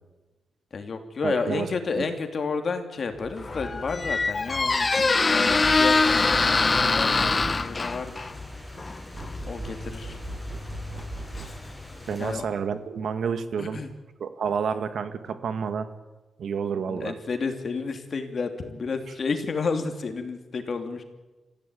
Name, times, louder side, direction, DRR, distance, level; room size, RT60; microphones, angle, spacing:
voice 1, 0.7-4.9 5.3-6.0 6.6-8.2 9.4-10.2 12.2-12.5 13.6-13.9 16.9-21.0, left 4 dB, 50° left, 6 dB, 3.0 m, -31 dB
voice 2, 1.2-1.7 2.0-2.1 12.1-13.8 14.2-15.9 16.4-17.1, right 6 dB, 75° right, 10 dB, 1.9 m, -29 dB
Squeak, 3.3-12.0, left 3 dB, 30° left, 0.9 m, -25 dB
sound 1, 5.4-12.4, equal, 5° left, 7.5 m, -46 dB
sound 2, 5.6-7.9 9.1-11.8, right 1 dB, 30° right, 7.3 m, -38 dB
26.0 x 15.5 x 9.4 m, 1.2 s
wide cardioid pair, 120°, 0 cm